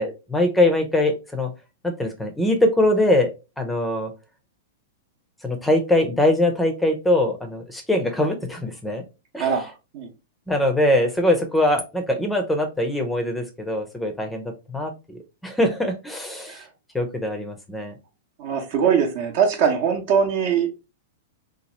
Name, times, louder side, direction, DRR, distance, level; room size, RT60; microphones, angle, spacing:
voice 1, 0.0-1.5 1.8-4.1 5.4-9.0 9.3-9.5 10.5-16.6 16.9-17.9, left 1 dB, 5° left, 5 dB, 0.6 m, -22 dB
voice 2, 9.4-10.1 16.5-16.7 18.4-20.8, right 7 dB, 50° right, 4 dB, 0.8 m, -22 dB
2.9 x 2.4 x 2.9 m, 0.29 s
hypercardioid pair, 120°, 0 cm